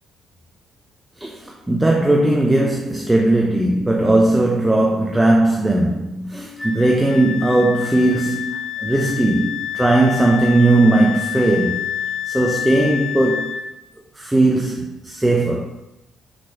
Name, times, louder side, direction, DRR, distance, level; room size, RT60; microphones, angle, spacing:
voice 1, 1.2-11.8 12.2-13.5 14.2-15.7, right 2 dB, 10° right, 0 dB, 0.9 m, -18 dB
Wind instrument woodwind instrument, 6.6-13.6, left 10 dB, 40° left, 2.7 m, -28 dB
6.1 x 4.3 x 5.7 m, 0.90 s
figure-of-eight pair, 45°, 0 cm